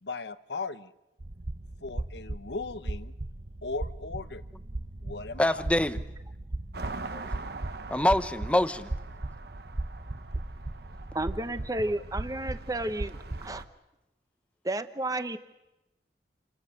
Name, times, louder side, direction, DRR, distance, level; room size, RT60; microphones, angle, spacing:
voice 1, 0.0-0.9 1.8-3.1 3.6-4.4 5.0-5.6, left 3 dB, 70° left, 13 dB, 1.0 m, -37 dB
sound 1, 1.2-13.7, right 2 dB, 45° right, 0.9 m, -38 dB
voice 2, 5.4-6.0 7.1-7.3 7.9-8.9, left 1 dB, 5° left, 11 dB, 0.9 m, -25 dB
sound 2, 6.7-13.6, right 3 dB, 60° right, 1.1 m, -44 dB
voice 3, 11.1-13.6 14.6-15.4, right 1 dB, 20° right, 11 dB, 1.0 m, -32 dB
29.5 x 26.5 x 6.6 m, 0.97 s
head